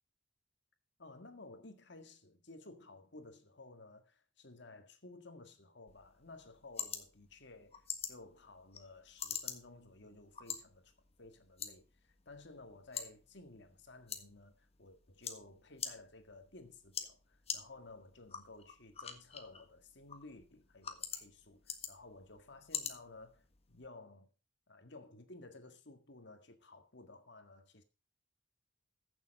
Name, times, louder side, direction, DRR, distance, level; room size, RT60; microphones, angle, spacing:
voice 1, 1.0-10.9 11.2-24.3 24.7-27.8, left 2 dB, 60° left, 1.9 m, -55 dB
sound 1, 5.9-23.9, left 7 dB, 30° left, 1.5 m, -47 dB
15.5 x 7.2 x 5.4 m
head